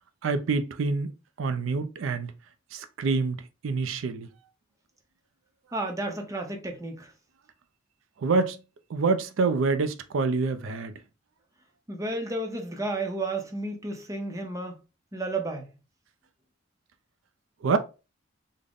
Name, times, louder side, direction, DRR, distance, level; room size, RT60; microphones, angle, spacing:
voice 1, 0.2-1.1 1.4-2.3 2.7-3.4 3.6-4.3 8.2-8.6 8.9-10.9 17.6-17.8, right 4 dB, 75° right, 0.4 m, -26 dB
voice 2, 5.7-7.1 11.9-14.7 15.1-15.7, right 2 dB, 15° right, 0.6 m, -32 dB
3.7 x 2.1 x 3.5 m
head